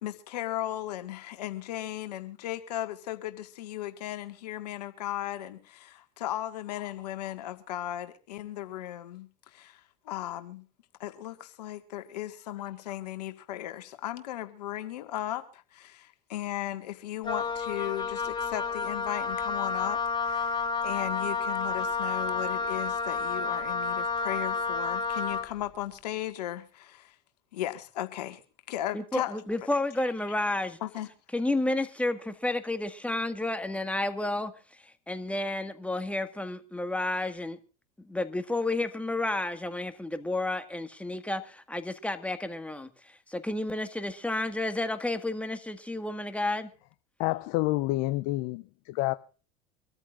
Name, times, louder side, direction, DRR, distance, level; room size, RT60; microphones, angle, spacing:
voice 1, 0.0-10.6 11.0-27.1 27.5-28.4 28.7-29.4 30.8-31.1, left 13 dB, 80° left, 1.7 m, -36 dB
Wind instrument woodwind instrument, 17.2-25.5, left 5 dB, 20° left, 2.8 m, -30 dB
voice 2, 28.9-30.8 31.3-34.5 35.1-37.6 38.1-42.9 43.3-46.7, left 2 dB, 5° left, 1.8 m, -31 dB
voice 3, 47.2-49.1, left 19 dB, 65° left, 0.8 m, -28 dB
25.0 x 13.5 x 2.5 m
hypercardioid pair, 90°, 21 cm